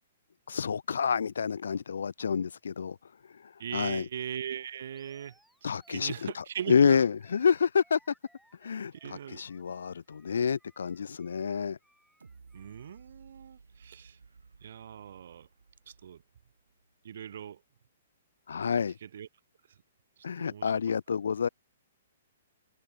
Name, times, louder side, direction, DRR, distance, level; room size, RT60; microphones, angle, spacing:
voice 1, 0.5-3.0 3.4-4.1 5.6-8.0 8.6-11.8 18.5-19.0 20.2-21.5, left 6 dB, 75° left, 0.5 m, -28 dB
voice 2, 3.6-5.3 5.9-7.1 9.0-9.4 12.5-14.2 14.6-15.5 16.0-16.2 17.0-17.6 19.0-19.3 20.4-20.7, right 9 dB, 65° right, 0.6 m, -39 dB
Animal, 4.9-13.0, equal, ahead, 3.0 m, -66 dB
sound 1, 12.2-17.1 17.5-17.6, right 4 dB, 90° right, 4.0 m, -57 dB
hypercardioid pair, 130°, 0 cm